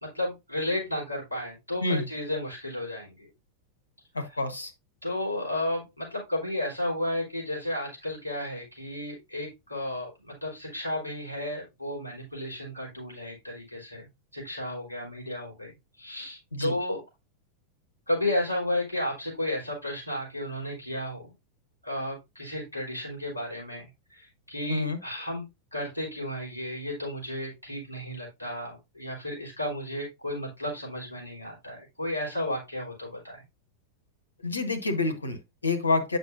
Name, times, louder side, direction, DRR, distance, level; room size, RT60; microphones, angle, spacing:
voice 1, 0.0-3.3 4.3-4.4 5.0-17.0 18.1-21.3 21.8-33.4, left 1 dB, 90° right, 4.0 m, -33 dB
voice 2, 4.1-4.7 16.5-16.7 24.7-25.0 34.4-36.2, left 3 dB, 80° left, 1.1 m, -28 dB
8.3 x 6.1 x 2.6 m
figure-of-eight pair, 90°, 0 cm